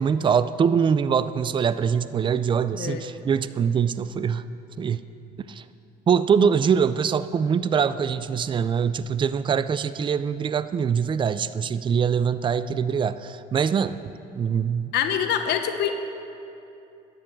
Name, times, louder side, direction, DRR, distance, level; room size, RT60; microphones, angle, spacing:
voice 1, 0.0-4.4 4.8-5.0 5.5-5.6 6.1-14.0 14.3-14.9, right 7 dB, 30° right, 14 dB, 0.4 m, -23 dB
voice 2, 2.7-3.0 14.9-16.0, left 8 dB, 75° left, 7 dB, 1.0 m, -25 dB
10.5 x 8.7 x 8.7 m, 2.8 s
cardioid pair, 110°, 17 cm